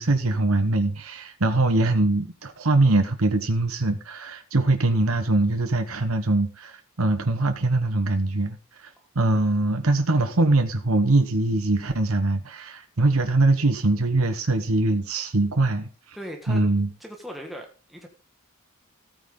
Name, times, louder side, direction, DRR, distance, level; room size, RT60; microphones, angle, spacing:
voice 1, 0.0-16.2 16.5-16.9, right 2 dB, 70° right, 7 dB, 1.2 m, -22 dB
voice 2, 16.1-16.6 17.0-18.1, equal, ahead, 1 dB, 1.6 m, -38 dB
14.5 x 9.2 x 3.8 m, 0.34 s
head